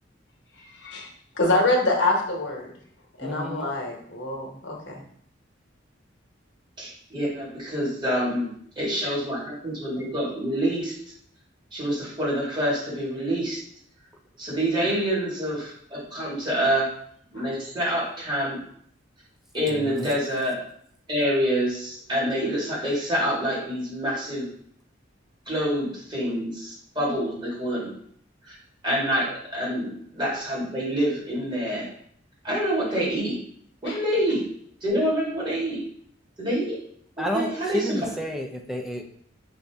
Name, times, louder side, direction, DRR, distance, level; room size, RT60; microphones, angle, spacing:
voice 1, 0.6-1.1 1.3-2.7 3.2-5.0 14.8-14.9 17.3-17.5 33.8-34.0, left 2 dB, 65° left, 0 dB, 1.0 m, -26 dB
voice 2, 3.2-3.7 19.7-20.1 37.2-37.5 37.7-39.0, equal, ahead, 2 dB, 0.5 m, -30 dB
voice 3, 6.8-10.9 11.7-13.6 14.4-16.9 17.3-18.6 19.5-20.6 21.1-24.5 25.5-27.9 28.5-28.6 28.8-29.3 29.5-31.9 32.4-33.3 33.8-34.4 34.8-35.8 36.4-36.8 37.2-38.2, equal, 25° right, -6 dB, 1.8 m, -26 dB
5.1 x 2.7 x 3.4 m, 0.64 s
head